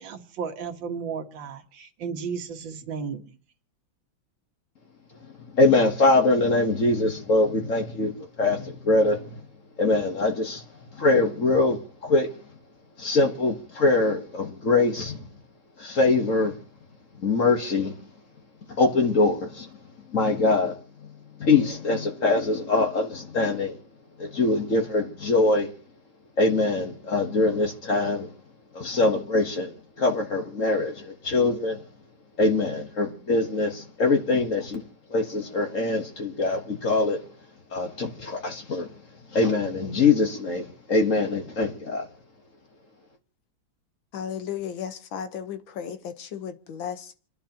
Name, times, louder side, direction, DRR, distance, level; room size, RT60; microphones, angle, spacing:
voice 1, 0.0-3.4, right 6 dB, 70° right, 2.0 m, -34 dB
voice 2, 5.5-9.4 9.8-10.6 10.9-12.3 13.0-15.2 15.8-16.5 17.2-18.0 18.7-19.7 20.1-20.7 21.4-23.8 24.2-25.7 26.4-28.3 28.7-31.8 32.4-34.8 35.1-37.2 37.7-38.9 39.3-42.0, left 3 dB, 45° left, 1.5 m, -23 dB
voice 3, 44.1-47.2, left 8 dB, 80° left, 1.9 m, -34 dB
29.5 x 10.5 x 2.9 m
omnidirectional pair, 2.1 m